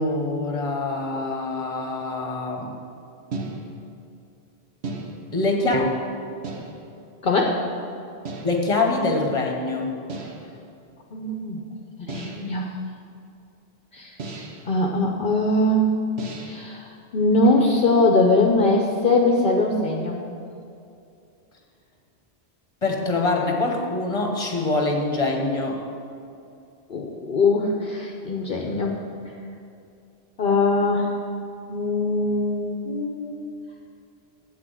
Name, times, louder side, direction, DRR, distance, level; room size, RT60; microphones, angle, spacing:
voice 1, 0.0-2.7 5.3-6.0 8.4-10.0 22.8-25.8, left 2 dB, 30° left, 1 dB, 1.3 m, -24 dB
sound 1, 3.3-4.0 4.8-5.5 6.4-7.0 8.2-8.7 10.1-10.6 12.1-12.6 14.2-14.8 16.2-16.7, right 2 dB, 75° right, 1.3 m, -35 dB
voice 2, 7.2-7.6 11.1-11.6 12.0-12.7 13.9-14.2 14.7-15.9 16.4-20.2 26.9-28.9 30.4-31.2 31.7-33.4, left 2 dB, 55° left, 1 dB, 0.9 m, -21 dB
8.3 x 6.0 x 8.1 m, 2.6 s
omnidirectional pair, 1.1 m